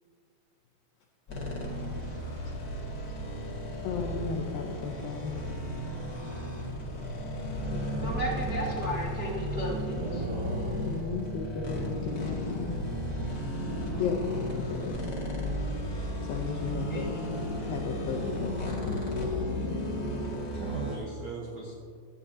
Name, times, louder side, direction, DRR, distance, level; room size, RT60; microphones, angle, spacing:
sound 1, 1.3-21.0, equal, 45° left, 1.1 m, -34 dB
voice 1, 3.8-5.3 7.7-8.2 10.8-12.8 14.0-14.2 14.6-15.1 16.3-17.2 17.6-19.8, left 5 dB, 80° left, 1 dB, 2.1 m, -35 dB
voice 2, 8.0-10.2 16.9-17.0 17.4-17.7, right 1 dB, 60° right, -6 dB, 0.9 m, -34 dB
voice 3, 10.0-10.9 20.5-21.7, right 2 dB, 80° right, -1 dB, 1.7 m, -39 dB
15.5 x 12.5 x 2.7 m, 2.2 s
omnidirectional pair, 5.0 m